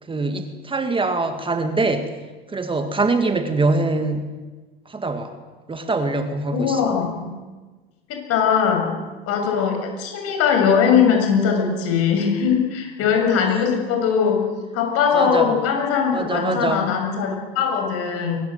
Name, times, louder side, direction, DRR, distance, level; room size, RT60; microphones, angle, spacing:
voice 1, 0.1-2.1 2.5-4.3 4.9-5.4 5.7-6.9 15.1-15.5 16.1-16.9, right 3 dB, 15° right, 7 dB, 2.0 m, -23 dB
voice 2, 6.5-7.3 8.1-8.9 9.3-14.5 14.7-18.4, left 7 dB, 50° left, 3 dB, 7.2 m, -20 dB
23.0 x 19.5 x 7.9 m, 1.3 s
hypercardioid pair, 85°, 30 cm